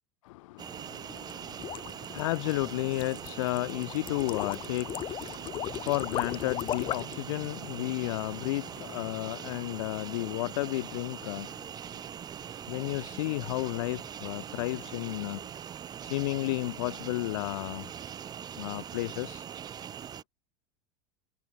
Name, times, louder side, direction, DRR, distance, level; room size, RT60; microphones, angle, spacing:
voice 1, 0.2-11.7 12.7-15.4 16.0-17.9 18.6-19.5, left 20 dB, 80° left, 1.1 m, -33 dB
sound 1, 0.6-20.2, right 9 dB, 25° right, 4.2 m, -42 dB
sound 2, 1.2-7.2, left 12 dB, 30° left, 1.6 m, -36 dB
Bowed string instrument, 5.2-9.9, right 25 dB, 65° right, 5.4 m, -54 dB
supercardioid pair, 160°, 17 cm